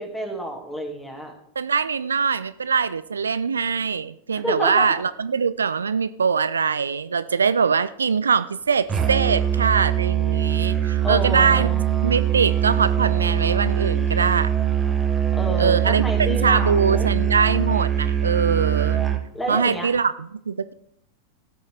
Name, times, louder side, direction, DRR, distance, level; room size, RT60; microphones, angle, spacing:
voice 1, 0.0-1.3 4.3-4.9 11.0-11.9 15.4-17.1 19.3-19.9, equal, 10° left, 3 dB, 2.1 m, -29 dB
voice 2, 1.6-11.7 12.0-14.5 15.6-19.0 19.5-20.7, right 6 dB, 70° right, 14 dB, 0.3 m, -22 dB
Musical instrument, 8.9-19.3, right 10 dB, 20° right, 1.0 m, -22 dB
16.0 x 6.3 x 3.4 m, 0.75 s
figure-of-eight pair, 90°, 0 cm